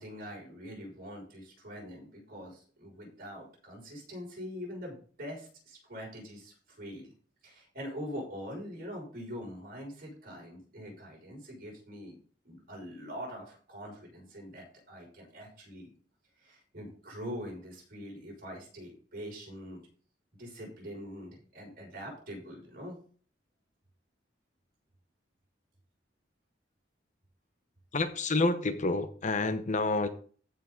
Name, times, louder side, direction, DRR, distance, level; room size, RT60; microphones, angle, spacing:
voice 1, 0.0-7.1 7.4-12.2 12.4-15.9 16.4-19.8 20.4-23.0, equal, 55° right, -1 dB, 6.0 m, -43 dB
voice 2, 27.9-30.1, left 3 dB, 45° left, 10 dB, 0.9 m, -28 dB
15.0 x 5.7 x 3.9 m, 0.43 s
head